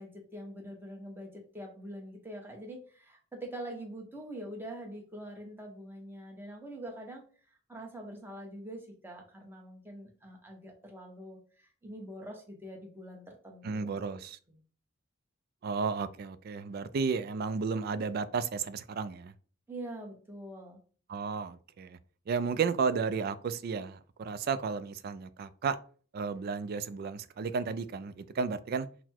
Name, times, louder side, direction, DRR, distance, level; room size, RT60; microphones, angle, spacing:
voice 1, 0.0-7.2 7.7-14.2 14.5-14.6 19.7-20.8, right 1 dB, 10° right, 0.9 m, -44 dB
voice 2, 13.6-14.4 15.6-19.3 21.1-22.0 22.3-25.8 26.1-28.9, right 5 dB, 50° right, 0.3 m, -33 dB
4.0 x 2.1 x 4.4 m
head